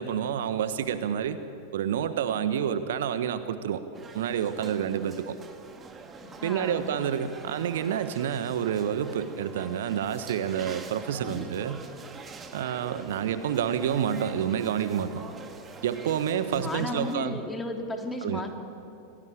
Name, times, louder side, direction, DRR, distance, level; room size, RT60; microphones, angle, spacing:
voice 1, 0.0-1.4 1.7-3.8 4.1-5.3 6.4-11.8 12.5-15.2 15.8-17.4 18.2-18.4, right 9 dB, 60° right, 12 dB, 1.2 m, -28 dB
sound 1, 3.9-17.1, right 4 dB, 20° right, 2.2 m, -45 dB
voice 2, 6.4-6.9 11.2-11.5 16.5-18.6, left 2 dB, 10° left, 3 dB, 3.2 m, -34 dB
28.0 x 19.0 x 8.9 m, 2.7 s
figure-of-eight pair, 90°, 0 cm